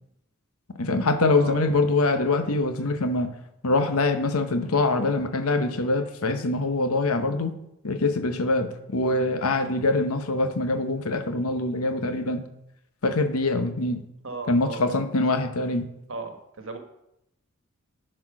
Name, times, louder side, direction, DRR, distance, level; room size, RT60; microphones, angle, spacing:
voice 1, 0.8-3.3 3.6-7.5 7.8-12.4 13.0-14.0 14.5-15.9, left 2 dB, 75° left, 7 dB, 1.0 m, -24 dB
voice 2, 14.2-15.0 16.1-16.8, right 3 dB, 65° right, 5 dB, 1.3 m, -36 dB
10.5 x 4.4 x 6.0 m, 0.83 s
head